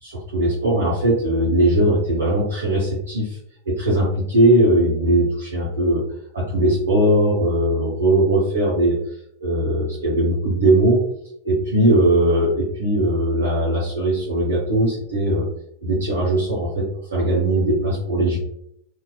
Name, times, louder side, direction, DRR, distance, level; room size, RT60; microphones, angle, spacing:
voice 1, 0.0-3.4 3.7-6.0 6.3-9.0 9.4-11.0 11.4-15.5 15.8-18.4, right 1 dB, 70° right, -7 dB, 0.7 m, -19 dB
2.8 x 2.2 x 2.2 m, 0.75 s
figure-of-eight pair, 90°, 0 cm